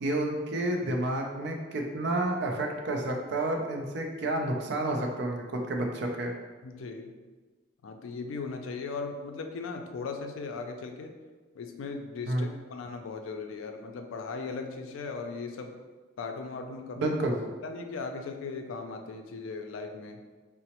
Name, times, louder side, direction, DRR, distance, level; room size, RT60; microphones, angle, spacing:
voice 1, 0.0-6.3 12.3-12.5 17.0-17.4, right 1 dB, 60° right, 2 dB, 0.4 m, -30 dB
voice 2, 6.6-7.2 7.8-11.1 11.5-15.8 16.2-17.2 17.6-20.2, left 4 dB, 80° left, 5 dB, 0.3 m, -38 dB
3.9 x 2.0 x 2.9 m, 1.4 s
head